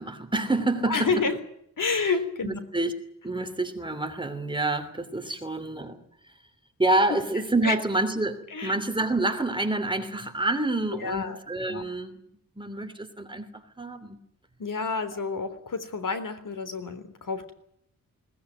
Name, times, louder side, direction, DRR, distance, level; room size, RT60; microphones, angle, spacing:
voice 1, 0.0-1.2 2.4-2.9 3.2-6.0 6.8-12.2 12.6-14.2, right 2 dB, 15° right, 7 dB, 3.0 m, -28 dB
voice 2, 0.8-1.4 1.8-2.6 7.6-7.8 8.5-8.7 11.0-11.4 11.7-11.8 14.6-17.5, left 4 dB, 65° left, 11 dB, 3.6 m, -29 dB
20.5 x 19.5 x 9.3 m, 0.71 s
wide cardioid pair, 115°, 35 cm